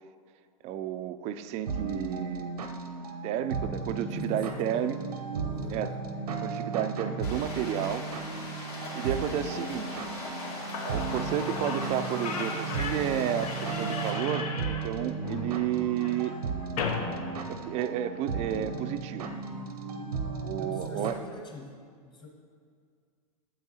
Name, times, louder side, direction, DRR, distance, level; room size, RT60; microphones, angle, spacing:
voice 1, 0.6-2.5 3.2-5.0 5.7-5.9 6.4-8.1 8.9-9.9 10.8-16.4 17.4-19.3 20.4-21.1, right 10 dB, 35° right, 10 dB, 0.4 m, -31 dB
sound 1, 1.7-21.1, right 4 dB, 90° right, 0.8 m, -35 dB
voice 2, 4.1-4.9 5.5-6.1 9.3-9.6 20.6-22.3, left 3 dB, 25° left, -1 dB, 1.5 m, -44 dB
sound 2, 7.2-14.1, left 2 dB, 90° left, 2.3 m, -41 dB
Slam / Squeak, 10.7-18.2, left 5 dB, 70° left, 0.9 m, -37 dB
10.0 x 7.9 x 2.8 m, 2.1 s
hypercardioid pair, 115°, 19 cm